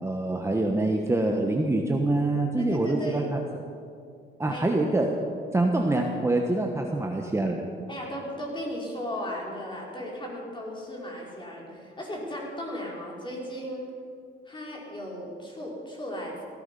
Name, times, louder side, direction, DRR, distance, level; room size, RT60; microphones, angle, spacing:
voice 1, 0.0-3.4 4.4-5.1 5.5-7.6, right 2 dB, 15° right, 1 dB, 1.3 m, -25 dB
voice 2, 2.6-3.3 4.5-4.6 7.9-13.9 14.4-16.4, left 1 dB, 25° left, -3 dB, 4.9 m, -36 dB
16.5 x 14.5 x 5.5 m, 2.3 s
cardioid pair, 90°, 20 cm